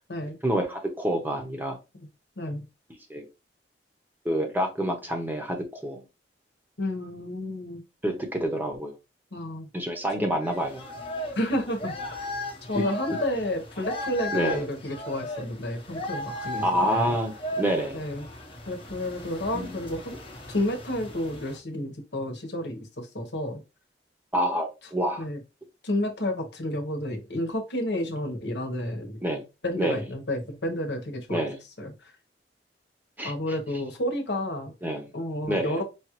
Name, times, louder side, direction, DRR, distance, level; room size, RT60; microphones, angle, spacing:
voice 1, 0.4-1.8 3.1-3.2 4.2-5.6 5.8-6.0 8.0-8.9 9.7-10.8 14.3-14.6 16.6-18.0 19.5-19.7 24.3-25.2 29.2-29.4 29.8-30.0 31.3-31.6 33.2-33.3 34.8-35.1 35.5-35.8, equal, 10° right, 4 dB, 0.8 m, -27 dB
voice 2, 6.8-7.8 9.3-9.7 10.2-10.4 11.4-12.3 12.7-17.1 17.9-18.3 18.7-20.2 20.5-23.6 25.2-25.4 25.8-29.2 29.6-31.5 31.8-32.1 33.2-34.7 35.1-35.8, left 1 dB, 75° left, 4 dB, 1.0 m, -31 dB
sound 1, 10.4-21.6, left 1 dB, 30° left, 0.9 m, -37 dB
5.0 x 2.4 x 3.0 m, 0.27 s
head